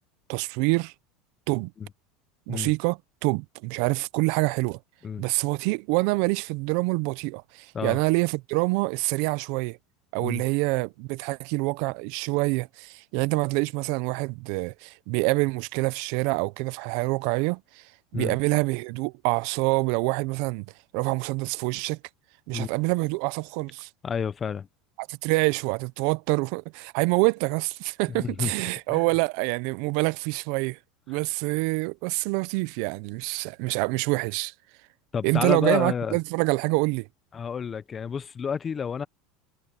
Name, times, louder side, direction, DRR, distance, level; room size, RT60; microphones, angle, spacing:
voice 1, 0.3-0.9 1.5-1.7 2.5-4.8 5.2-9.8 10.1-17.8 18.1-20.7 20.9-22.0 22.5-23.9 25.0-30.8 31.1-34.5 35.2-37.1, right 26 dB, 60° right, 0.5 m, -26 dB
voice 2, 24.0-24.7 28.2-28.5 28.9-29.0 35.1-36.2 37.3-39.1, left 6 dB, 20° left, 0.5 m, -30 dB
supercardioid pair, 160°, 0 cm